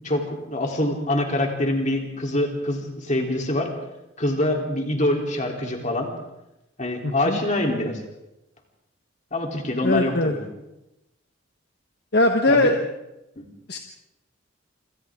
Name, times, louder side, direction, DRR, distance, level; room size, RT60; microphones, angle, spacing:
voice 1, 0.0-3.7 4.2-6.1 6.8-8.0 9.3-10.4 12.5-12.7 13.4-13.5, left 1 dB, 40° left, 1 dB, 3.6 m, -25 dB
voice 2, 7.0-7.4 9.8-10.3 12.1-12.8 13.7-13.8, left 2 dB, 55° left, 4 dB, 1.3 m, -20 dB
27.0 x 27.0 x 3.8 m, 0.92 s
head